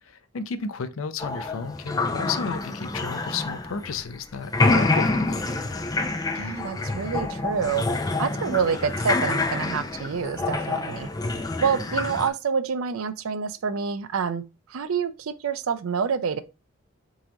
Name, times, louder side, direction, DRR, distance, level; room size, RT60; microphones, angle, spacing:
voice 1, 0.0-5.6, left 5 dB, 80° left, 0.5 m, -32 dB
sound 1, 1.2-4.2 4.4-12.3, left 2 dB, 20° left, 0.4 m, -27 dB
voice 2, 6.3-7.9 8.2-11.1 11.6-14.4 14.7-16.4, right 6 dB, 90° right, 0.5 m, -27 dB
3.9 x 3.8 x 2.9 m
head